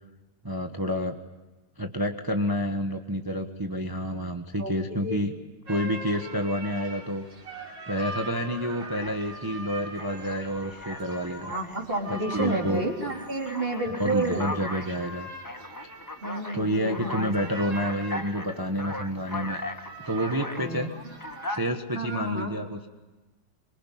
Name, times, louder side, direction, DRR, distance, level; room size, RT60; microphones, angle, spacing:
voice 1, 0.4-1.2 1.8-5.3 5.7-7.2 7.9-11.5 12.1-12.8 14.0-15.3 16.5-19.6 20.1-20.9 21.5-22.8, equal, 15° right, 5 dB, 1.2 m, -29 dB
voice 2, 4.6-5.3 11.4-14.5 16.2-17.3 20.6-20.9 21.9-22.5, right 2 dB, 30° right, -1 dB, 4.2 m, -31 dB
sound 1, 5.7-21.8, right 1 dB, 85° right, 4.2 m, -43 dB
Alarm, 8.2-8.3 8.8-9.5 10.0-12.7 13.1-20.7 21.1-21.6, left 1 dB, 10° left, 1.3 m, -38 dB
26.0 x 24.0 x 9.3 m, 1.2 s
omnidirectional pair, 2.0 m